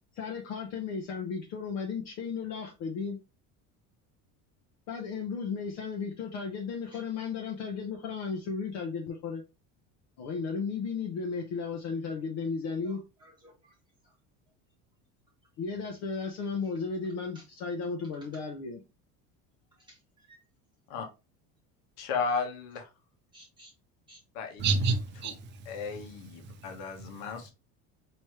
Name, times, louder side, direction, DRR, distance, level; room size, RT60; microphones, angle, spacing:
voice 1, 0.1-3.2 4.9-9.4 10.2-13.0 15.6-18.8, left 5 dB, 50° left, 0.9 m, -34 dB
voice 2, 12.8-13.8 14.0-14.1 17.3-17.4 19.7-20.4 23.3-23.7 24.1-24.2, right 1 dB, 15° right, 1.2 m, -57 dB
voice 3, 22.0-22.9 24.3-24.6 25.7-27.5, left 5 dB, 80° left, 1.3 m, -34 dB
voice 4, 24.6-26.1 26.4-27.3, right 4 dB, 30° right, 0.7 m, -32 dB
4.9 x 3.0 x 3.0 m
cardioid pair, 175°, 35 cm